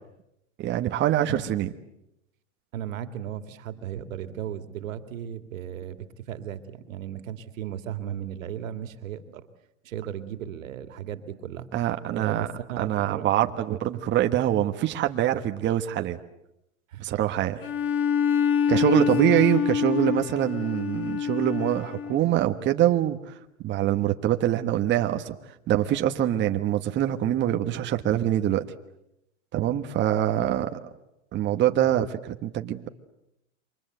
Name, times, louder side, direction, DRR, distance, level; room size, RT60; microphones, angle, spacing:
voice 1, 0.6-1.7 11.7-12.5 12.8-16.2 17.0-17.6 18.7-28.7 29.5-30.9 31.3-32.9, right 12 dB, 30° right, 6 dB, 1.4 m, -24 dB
voice 2, 2.7-9.5 9.8-11.7 12.1-12.4 12.7-13.3 16.9-17.1 18.7-19.5, right 10 dB, 80° right, 9 dB, 2.4 m, -36 dB
Bowed string instrument, 17.6-22.3, left 7 dB, 30° left, 1.7 m, -26 dB
28.5 x 24.5 x 8.0 m, 0.85 s
supercardioid pair, 135°, 39 cm